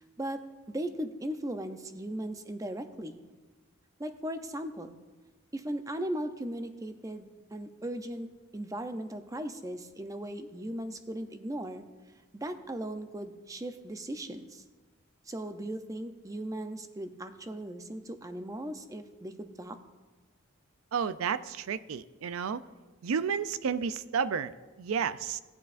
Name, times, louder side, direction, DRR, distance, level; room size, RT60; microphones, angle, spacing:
voice 1, 0.2-3.2 4.0-5.0 5.5-11.8 12.3-14.6 15.3-19.8, right 1 dB, 15° right, 8 dB, 0.5 m, -38 dB
voice 2, 20.9-22.6 23.0-25.4, right 6 dB, 85° right, 14 dB, 0.4 m, -31 dB
16.5 x 8.1 x 2.5 m, 1.3 s
head